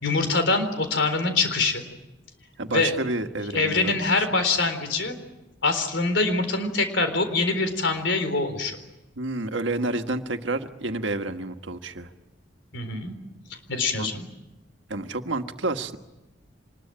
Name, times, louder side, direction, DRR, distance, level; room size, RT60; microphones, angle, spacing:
voice 1, 0.0-1.9 2.7-2.9 3.5-5.1 5.6-8.8 12.7-13.1 13.7-14.3, left 3 dB, 75° left, 8 dB, 4.0 m, -24 dB
voice 2, 2.6-4.3 9.2-12.1 14.0-14.1 14.9-16.0, right 2 dB, 80° right, 7 dB, 1.5 m, -29 dB
25.5 x 21.0 x 8.9 m, 0.98 s
head